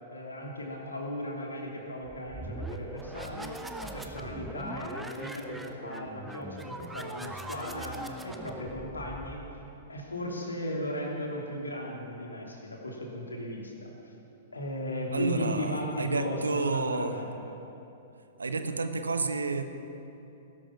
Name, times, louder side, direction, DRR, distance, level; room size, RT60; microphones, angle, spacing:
voice 1, 0.1-9.4 9.9-13.9 14.5-17.5, left 1 dB, 80° left, -1 dB, 2.8 m, -36 dB
sound 1, 2.1-9.7, right 2 dB, 5° right, 1.0 m, -41 dB
voice 2, 15.1-17.1 18.4-19.6, right 4 dB, 75° right, 8 dB, 1.1 m, -30 dB
19.0 x 11.5 x 5.8 m, 2.9 s
figure-of-eight pair, 105°, 0 cm